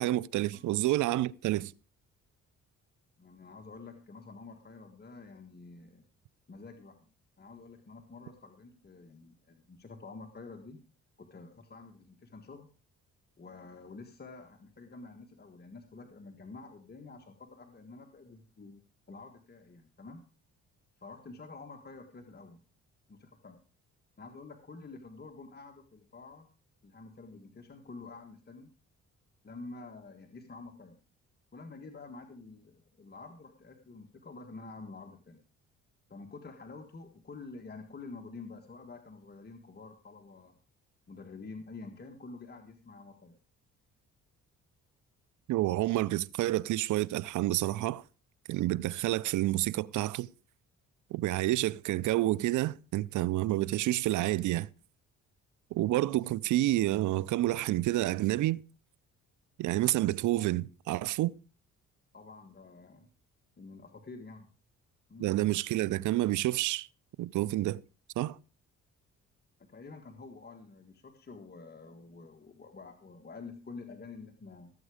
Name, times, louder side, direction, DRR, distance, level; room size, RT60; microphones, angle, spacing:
voice 1, 0.0-1.7 45.5-48.0 48.5-50.3 51.1-54.7 55.7-58.6 59.6-61.3 65.2-66.9 67.2-67.8 68.2-68.4, right 16 dB, 75° right, 0.6 m, -29 dB
voice 2, 3.2-6.0 6.5-10.8 11.2-12.7 13.4-18.8 19.1-20.2 21.0-22.6 23.1-23.6 24.2-26.5 26.8-28.7 29.4-31.0 31.5-35.4 36.1-40.6 41.1-43.4 62.1-63.1 63.6-64.5 65.1-65.3 69.7-74.7, left 3 dB, 35° left, 1.6 m, -48 dB
16.5 x 8.2 x 5.0 m
cardioid pair, 90°, 30 cm